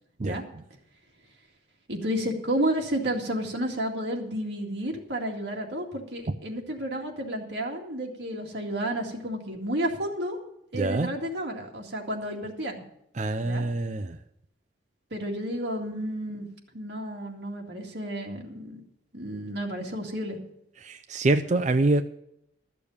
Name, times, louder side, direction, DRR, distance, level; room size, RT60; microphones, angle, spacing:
voice 1, 1.9-10.4 10.7-12.8 13.4-13.7 15.1-16.5 16.7-18.8 19.1-20.4, right 1 dB, 60° right, 1 dB, 2.1 m, -31 dB
voice 2, 10.7-11.1 13.2-14.2 20.8-22.0, right 2 dB, 40° right, 8 dB, 0.5 m, -25 dB
13.0 x 6.8 x 7.0 m, 0.76 s
head